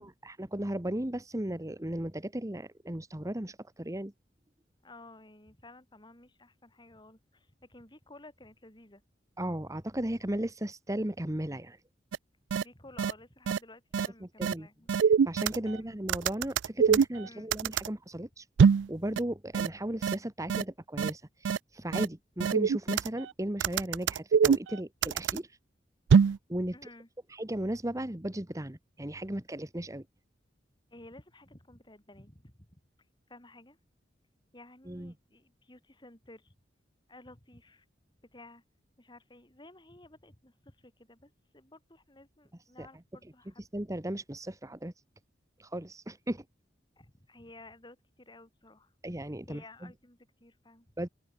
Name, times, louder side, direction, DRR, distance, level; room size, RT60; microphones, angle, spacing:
voice 1, 0.0-4.1 9.4-11.8 14.4-14.7 15.2-18.5 18.9-25.6 26.5-26.8 27.3-30.0 34.9-35.1 42.8-42.9 43.7-44.9 45.6-46.4 49.0-49.9 51.0-51.1, right 1 dB, 20° right, 1.3 m, -36 dB
voice 2, 4.8-9.0 12.6-14.9 15.6-16.0 17.2-17.5 26.7-27.1 30.9-32.8 33.3-33.8 34.5-36.5 37.1-37.9 38.3-38.6 39.0-43.6 47.0-48.9 49.4-51.1, left 2 dB, 25° left, 4.0 m, -54 dB
sound 1, 12.1-12.2 12.5-12.6 13.0-13.1 13.5-13.6 13.9-14.1 14.4-14.5 14.9-15.7 16.1-17.9 18.6-18.9 19.2-19.3 19.5-19.7 20.0-20.1 20.5-20.6 21.0-21.1 21.4-21.6 21.9-22.0 22.4-23.2 23.6-25.4 26.1-26.4, right 6 dB, 85° right, 0.4 m, -23 dB
open air
head